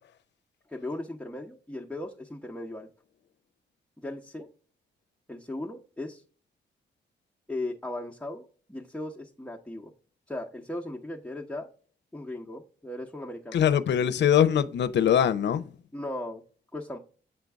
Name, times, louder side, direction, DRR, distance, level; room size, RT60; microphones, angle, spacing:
voice 1, 0.7-2.9 4.0-4.5 5.3-6.2 7.5-9.9 10.3-11.7 12.1-13.6 15.9-16.4 16.7-17.0, left 1 dB, 5° left, 0.9 m, -37 dB
voice 2, 13.5-15.7, left 9 dB, 70° left, 0.6 m, -22 dB
8.0 x 3.9 x 3.5 m
cardioid pair, 60°, 19 cm